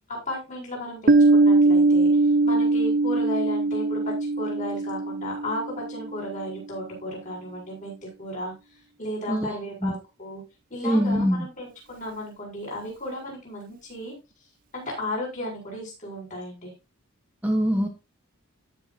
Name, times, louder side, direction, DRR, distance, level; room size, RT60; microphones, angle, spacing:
voice 1, 0.3-2.1 2.4-8.5 9.0-10.4 10.7-14.1 14.7-16.7, left 1 dB, 35° left, -2 dB, 7.4 m, -34 dB
Piano, 1.1-6.4, right 3 dB, 40° right, 0.5 m, -21 dB
voice 2, 9.3-9.9 10.8-11.5 17.4-17.9, equal, 5° right, 2 dB, 1.3 m, -24 dB
17.5 x 6.8 x 2.8 m, 0.27 s
head